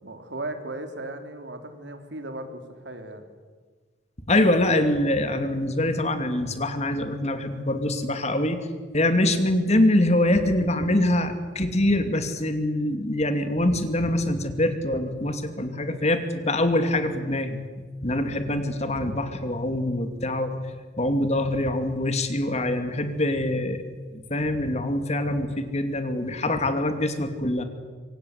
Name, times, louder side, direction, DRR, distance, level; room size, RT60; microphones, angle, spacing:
voice 1, 0.0-3.3, right 2 dB, 70° right, 6 dB, 3.7 m, -36 dB
voice 2, 4.3-8.6 8.9-17.6 18.0-20.7 21.0-23.8 24.1-27.6, left 1 dB, 40° left, 8 dB, 2.6 m, -24 dB
26.0 x 25.5 x 8.3 m, 1.4 s
head